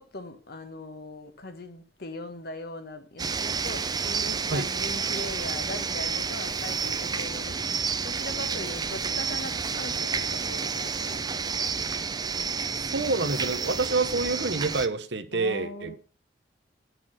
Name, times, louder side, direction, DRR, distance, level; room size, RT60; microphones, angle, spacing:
voice 1, 0.0-11.4 15.3-16.0, left 2 dB, 60° left, 1.2 m, -40 dB
sound 1, 3.2-14.9, right 5 dB, 20° right, 0.6 m, -30 dB
voice 2, 12.7-15.9, right 3 dB, 70° right, 1.0 m, -27 dB
9.0 x 6.1 x 6.2 m
head